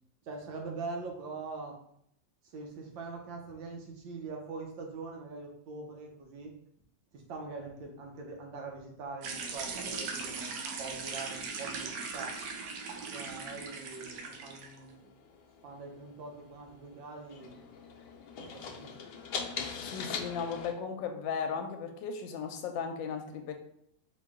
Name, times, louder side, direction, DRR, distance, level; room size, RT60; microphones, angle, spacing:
voice 1, 0.3-1.8 2.5-6.5 7.1-12.4 13.1-15.1 15.6-17.6 18.4-19.1, right 3 dB, 90° right, 1 dB, 1.6 m, -43 dB
sound 1, 9.2-14.8, right 4 dB, 70° right, 1.2 m, -39 dB
sound 2, 14.0-20.7, left 5 dB, 70° left, 1.1 m, -42 dB
voice 2, 19.9-23.5, left 6 dB, 90° left, 5 dB, 1.3 m, -36 dB
4.4 x 2.9 x 3.6 m, 0.69 s
omnidirectional pair, 2.0 m